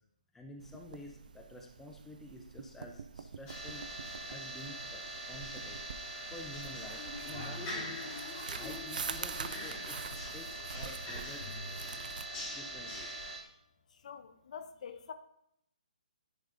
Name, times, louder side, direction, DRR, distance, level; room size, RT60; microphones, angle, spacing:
voice 1, 0.3-3.8 4.2-5.8 6.3-8.0 8.5-12.0 12.5-13.1, left 2 dB, 5° left, 2 dB, 0.6 m, -50 dB
sound 1, 0.6-12.3, right 6 dB, 65° right, 0.4 m, -46 dB
sound 2, 3.5-13.4, right 1 dB, 20° left, 2.7 m, -42 dB
sound 3, 4.0-8.6 9.3-12.7 13.4-13.5, left 1 dB, 75° left, 2.1 m, -52 dB
voice 2, 13.9-15.1, left 7 dB, 50° left, 10 dB, 0.6 m, -46 dB
10.0 x 5.1 x 2.6 m, 0.75 s
hypercardioid pair, 150°, 5 cm